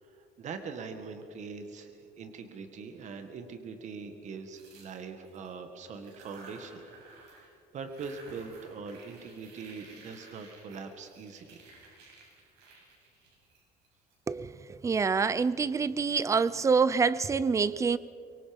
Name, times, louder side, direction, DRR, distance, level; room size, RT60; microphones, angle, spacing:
voice 1, 0.0-7.4 7.7-11.6, right 5 dB, 45° right, 1.8 m, -42 dB
sound 1, 4.5-5.5 6.0-7.5 7.8-14.1, right 3 dB, 80° right, 7.8 m, -54 dB
voice 2, 14.3-18.0, right 5 dB, 20° right, 0.5 m, -26 dB
24.5 x 23.5 x 5.3 m
cardioid pair, 155°, 17 cm